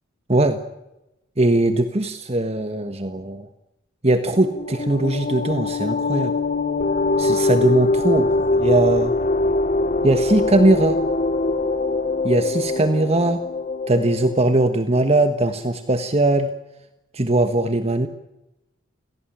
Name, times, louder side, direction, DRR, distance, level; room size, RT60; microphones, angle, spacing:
voice 1, 1.4-3.5 4.0-6.3 7.2-9.1 10.0-11.0 12.2-13.4 13.9-16.5 17.1-18.1, right 2 dB, 30° right, 8 dB, 1.4 m, -20 dB
sound 1, 4.3-14.6, left 2 dB, 40° left, 1.4 m, -22 dB
26.5 x 17.5 x 9.2 m, 0.94 s
head